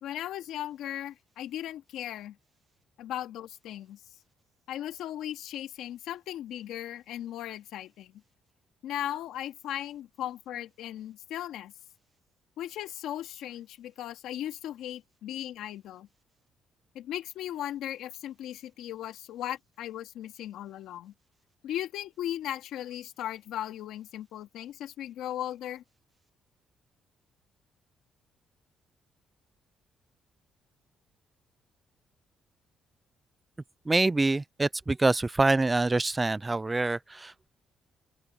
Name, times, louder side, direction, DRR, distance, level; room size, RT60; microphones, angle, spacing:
voice 1, 0.0-2.4 3.0-4.0 4.7-8.2 8.8-11.7 12.6-16.1 16.9-21.1 21.6-25.8, left 12 dB, 85° left, 2.3 m, -37 dB
voice 2, 33.9-37.5, right 2 dB, 20° right, 0.3 m, -26 dB
open air
cardioid pair, 90°, 0 cm